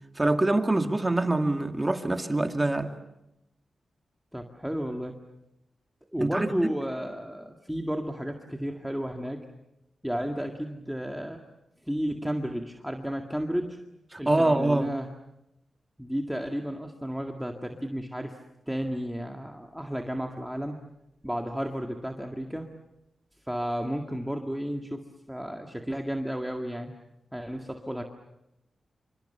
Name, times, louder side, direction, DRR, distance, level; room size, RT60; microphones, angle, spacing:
voice 1, 0.2-3.0 6.2-6.7 14.1-14.9, right 2 dB, 20° right, 2.2 m, -25 dB
voice 2, 4.3-5.1 6.1-9.4 10.0-11.4 11.9-13.8 14.2-15.1 16.0-18.4 18.7-20.8 21.2-22.7 23.5-25.0 25.3-26.9 27.3-28.0, equal, 5° right, 2.0 m, -32 dB
28.0 x 26.0 x 6.9 m
cardioid pair, 85°, 0 cm